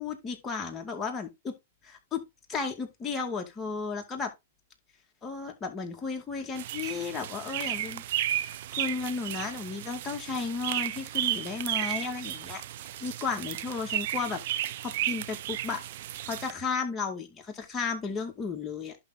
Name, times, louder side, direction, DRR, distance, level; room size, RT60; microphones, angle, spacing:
voice 1, 0.0-1.6 1.8-2.2 2.5-4.3 5.2-8.0 8.4-12.6 13.0-14.4 14.8-15.8 16.3-19.0, left 5 dB, 20° left, 2.4 m, -34 dB
sound 1, 6.6-16.5, right 12 dB, 60° right, 0.7 m, -33 dB
11.0 x 3.9 x 3.8 m
hypercardioid pair, 130°, 0 cm